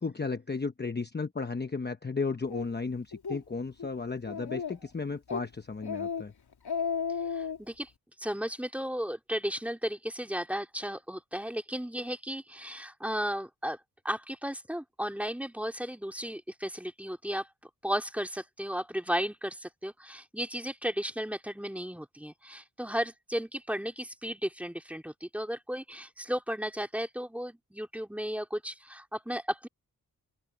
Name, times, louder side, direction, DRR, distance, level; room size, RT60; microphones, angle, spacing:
voice 1, 0.0-6.3, left 4 dB, 25° left, 0.9 m, -34 dB
Speech, 2.5-2.7 3.1-3.4 3.8-3.9 4.3-4.9 5.3-5.5 5.8-6.2 6.5-7.6, left 6 dB, 85° left, 3.1 m, -33 dB
voice 2, 7.3-7.9 8.2-13.8 14.0-17.5 17.8-29.7, equal, 5° right, 2.4 m, -34 dB
open air
wide cardioid pair, 110°, 38 cm